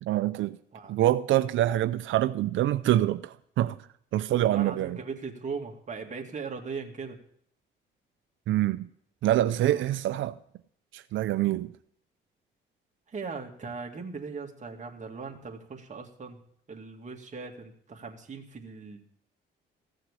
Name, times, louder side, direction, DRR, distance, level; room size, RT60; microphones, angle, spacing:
voice 1, 0.0-0.6 0.9-3.8 4.1-5.0 8.5-8.9 9.2-10.3 10.9-11.7, right 13 dB, 75° right, 0.5 m, -25 dB
voice 2, 4.3-7.2 9.6-9.9 13.1-16.4 16.7-19.0, right 5 dB, 35° right, 2.4 m, -39 dB
16.0 x 6.5 x 8.3 m
cardioid pair, 90°, 20 cm